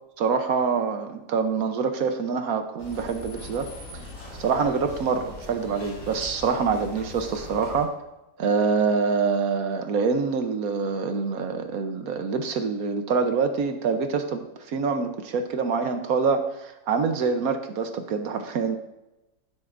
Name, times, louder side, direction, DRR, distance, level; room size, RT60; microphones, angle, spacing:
voice 1, 0.2-3.7 4.4-7.9 8.4-18.8, right 5 dB, 65° right, 7 dB, 1.2 m, -25 dB
sound 1, 2.8-7.9, left 2 dB, 85° left, 4.2 m, -41 dB
14.5 x 7.8 x 2.5 m, 0.96 s
omnidirectional pair, 1.7 m